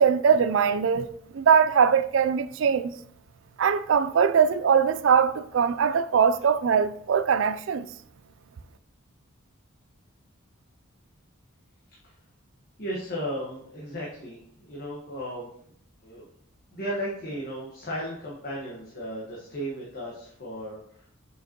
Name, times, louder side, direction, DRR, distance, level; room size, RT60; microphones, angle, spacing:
voice 1, 0.0-2.9 3.6-7.9, right 7 dB, 65° right, 0.4 m, -21 dB
voice 2, 12.8-15.5 16.0-16.2 16.7-21.2, equal, 45° left, 1.3 m, -35 dB
6.6 x 5.2 x 2.9 m
head